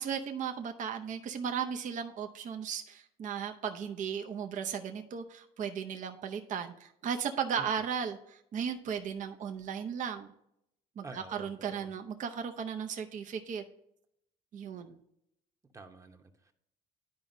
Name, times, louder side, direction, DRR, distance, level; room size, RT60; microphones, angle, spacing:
voice 1, 0.0-10.3 11.0-13.6 14.5-15.0, right 7 dB, 50° right, 5 dB, 0.7 m, -36 dB
voice 2, 11.0-11.9 15.7-16.5, right 3 dB, 20° right, 6 dB, 0.9 m, -49 dB
11.0 x 4.9 x 2.6 m, 0.76 s
cardioid pair, 110°, 17 cm